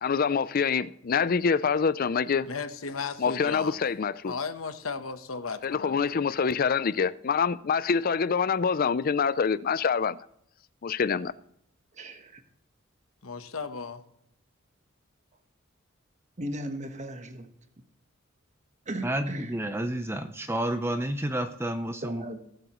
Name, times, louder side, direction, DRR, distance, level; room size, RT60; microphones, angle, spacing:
voice 1, 0.0-2.5 3.2-4.3 5.6-10.2 10.8-11.3, left 6 dB, 45° left, 0.4 m, -26 dB
voice 2, 2.4-3.8 4.2-6.2 13.2-14.0, left 5 dB, 90° left, 1.0 m, -35 dB
voice 3, 11.9-12.4 16.4-17.5 18.9-19.6 22.0-22.4, right 1 dB, 35° right, 1.2 m, -37 dB
voice 4, 19.0-22.4, right 1 dB, 10° right, 0.6 m, -30 dB
19.0 x 7.8 x 3.0 m
head